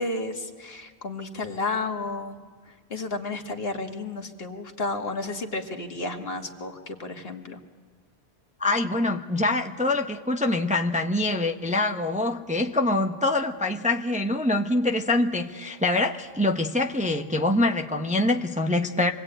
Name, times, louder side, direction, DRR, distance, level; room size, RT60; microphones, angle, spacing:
voice 1, 0.0-2.4 2.7-7.6, left 3 dB, 65° left, 4 dB, 1.9 m, -32 dB
voice 2, 8.6-19.1, left 2 dB, 10° right, 4 dB, 0.8 m, -24 dB
26.5 x 21.5 x 8.8 m, 1.5 s
omnidirectional pair, 1.1 m